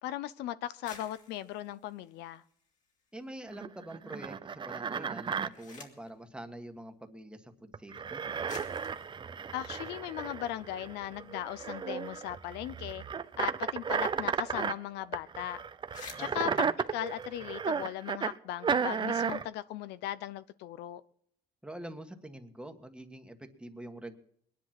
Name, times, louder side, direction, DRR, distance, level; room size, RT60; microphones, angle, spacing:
voice 1, 0.0-2.4 9.5-13.0 13.4-15.6 16.2-16.5 16.9-21.0, left 13 dB, 90° left, 0.7 m, -38 dB
sound 1, 0.7-3.2 3.6-4.3 5.1-6.2 7.2-7.3 8.0-8.1 8.5-10.8 11.1-11.2 11.5-14.1 14.4-14.5 14.8-15.0 15.4-15.5 15.7-17.9, left 4 dB, 45° left, 3.0 m, -54 dB
voice 2, 3.1-8.2 16.2-16.6 21.6-24.2, right 1 dB, 5° right, 1.6 m, -45 dB
sound 2, 3.5-5.5 7.7-14.8 15.1-18.3 18.6-19.5, right 6 dB, 30° right, 0.6 m, -34 dB
21.0 x 10.5 x 6.0 m
cardioid pair, 110°, 17 cm